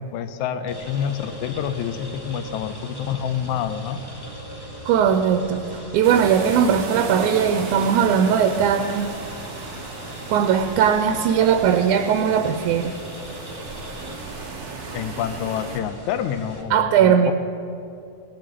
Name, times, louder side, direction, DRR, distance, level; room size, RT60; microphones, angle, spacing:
voice 1, 0.0-4.0 14.9-17.3, left 9 dB, 85° left, 11 dB, 2.0 m, -28 dB
sound 1, 0.7-16.6, right 1 dB, 10° left, 1.5 m, -39 dB
voice 2, 4.9-5.6 5.9-9.1 10.3-12.9 16.7-17.3, right 8 dB, 90° right, 7 dB, 2.1 m, -19 dB
sound 2, 6.0-15.8, right 4 dB, 45° right, 1.3 m, -36 dB
18.5 x 7.8 x 8.4 m, 2.6 s
omnidirectional pair, 3.4 m